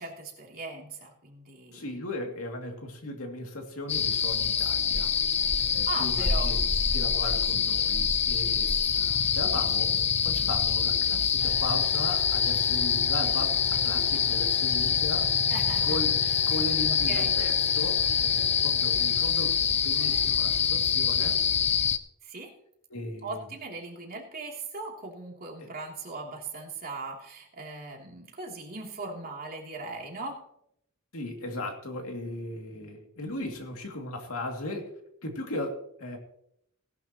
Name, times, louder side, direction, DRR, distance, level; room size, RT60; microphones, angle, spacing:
voice 1, 0.0-2.0 5.9-6.5 15.5-16.0 17.1-17.3 22.2-22.5 23.2-30.4, right 3 dB, 45° right, 0 dB, 3.0 m, -39 dB
voice 2, 1.7-5.1 5.6-8.8 9.3-15.3 15.8-16.2 16.5-21.4 22.9-23.4 25.6-25.7 31.1-34.9 35.2-36.2, left 1 dB, 70° left, 3 dB, 2.6 m, -37 dB
sound 1, 3.9-22.0, left 7 dB, 30° left, 0.6 m, -25 dB
sound 2, 11.4-20.3, left 2 dB, 45° left, 3.8 m, -45 dB
18.0 x 11.5 x 3.0 m, 0.73 s
head